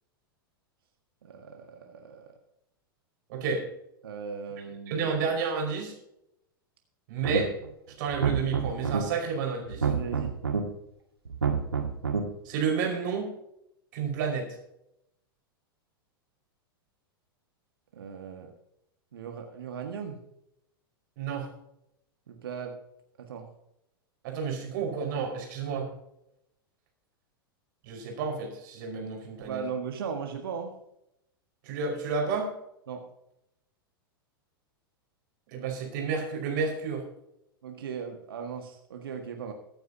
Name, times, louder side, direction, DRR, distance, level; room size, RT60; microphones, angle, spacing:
voice 1, 1.2-2.3 4.0-5.1 9.8-10.3 17.9-18.5 19.1-20.2 22.3-22.8 23.2-23.5 29.4-30.7 32.9-33.0 37.6-39.5, right 6 dB, 70° right, 3 dB, 1.7 m, -37 dB
voice 2, 3.3-3.7 4.9-5.9 7.1-7.5 8.0-9.9 12.5-13.3 13.9-14.6 21.2-21.5 24.2-25.9 27.9-29.6 31.6-32.5 35.5-37.1, right 5 dB, 55° right, 1 dB, 5.1 m, -30 dB
sound 1, 7.2-7.7 8.1-9.0 9.7-10.6 11.3-12.2, right 6 dB, 85° right, 2.0 m, -28 dB
23.0 x 9.1 x 2.8 m, 0.81 s
figure-of-eight pair, 95°, 12 cm